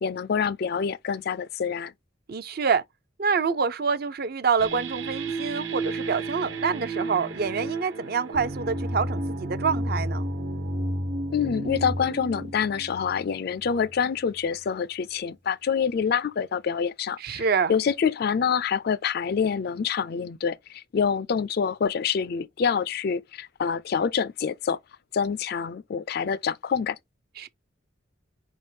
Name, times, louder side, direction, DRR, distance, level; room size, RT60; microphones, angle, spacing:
voice 1, 0.0-1.9 11.3-24.8 25.1-27.0, left 6 dB, 50° left, 0.4 m, -26 dB
voice 2, 2.3-2.8 3.2-10.2 17.2-17.7 27.4-27.5, right 5 dB, 50° right, 0.5 m, -26 dB
sound 1, 4.6-13.9, right 1 dB, 70° right, 1.2 m, -32 dB
4.9 x 3.5 x 2.7 m
head